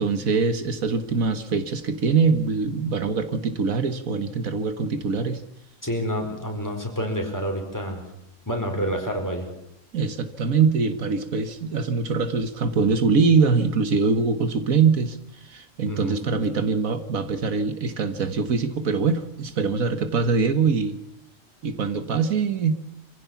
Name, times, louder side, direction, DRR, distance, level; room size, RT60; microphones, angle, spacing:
voice 1, 0.0-5.4 9.9-21.0 21.6-22.7, right 5 dB, 75° right, 10 dB, 1.8 m, -23 dB
voice 2, 5.8-8.0 8.5-9.5 15.9-16.2, equal, 10° left, 2 dB, 4.6 m, -28 dB
25.0 x 16.0 x 7.2 m, 0.75 s
omnidirectional pair, 1.5 m